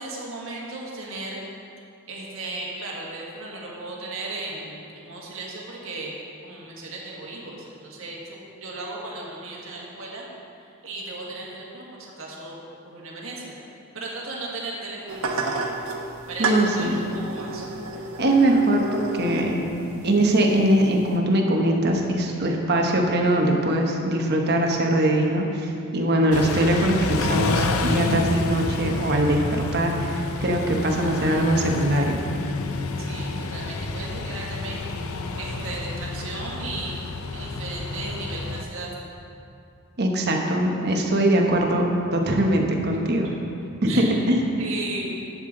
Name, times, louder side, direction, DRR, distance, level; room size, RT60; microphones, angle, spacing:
voice 1, 0.0-1.4 2.1-6.1 6.4-10.3 10.6-12.6 12.9-13.5 13.9-15.6 16.3-17.7 33.0-37.0 37.3-38.9 43.1-43.3 43.9-44.2 44.6-45.0, right 2 dB, 70° right, -4 dB, 1.7 m, -36 dB
sound 1, 15.1-21.2, right 3 dB, 85° right, 1.1 m, -32 dB
voice 2, 16.4-17.0 18.2-19.7 20.0-29.4 29.7-32.2 40.0-41.8 42.1-43.3 43.8-44.4, right 1 dB, 50° right, 1 dB, 1.1 m, -21 dB
Car / Idling / Accelerating revving vroom, 26.3-38.6, left 3 dB, 85° left, 0.6 m, -29 dB
11.5 x 7.7 x 3.9 m, 2.6 s
head